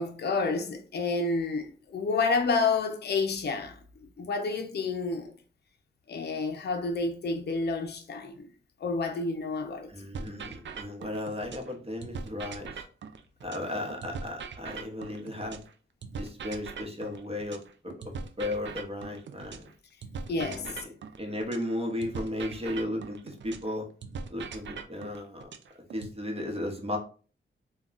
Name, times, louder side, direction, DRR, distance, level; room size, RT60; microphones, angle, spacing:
voice 1, 0.0-5.4 6.1-8.5 8.8-9.9 20.3-20.8, left 4 dB, 55° left, 0.5 m, -29 dB
voice 2, 9.9-12.8 13.4-15.6 16.2-17.6 17.8-17.9 18.4-19.7 20.4-20.7 21.2-23.9 24.3-25.5 25.9-27.0, left 1 dB, 30° right, 0.9 m, -35 dB
sound 1, 10.1-11.7 12.0-15.7 16.0-19.7 20.0-23.7 24.0-26.1, right 5 dB, 65° right, 0.4 m, -41 dB
2.2 x 2.2 x 3.8 m
cardioid pair, 60°, 21 cm